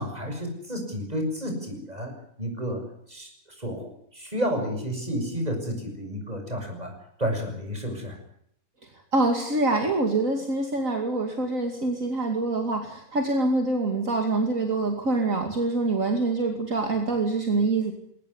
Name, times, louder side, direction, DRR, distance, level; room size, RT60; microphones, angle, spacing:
voice 1, 0.0-2.1 2.4-2.8 3.1-3.3 3.6-3.9 4.1-6.9 7.2-8.2, equal, 25° right, 4 dB, 7.0 m, -30 dB
voice 2, 9.1-17.9, right 2 dB, 60° right, 3 dB, 2.9 m, -25 dB
21.5 x 19.0 x 9.8 m, 0.71 s
omnidirectional pair, 1.6 m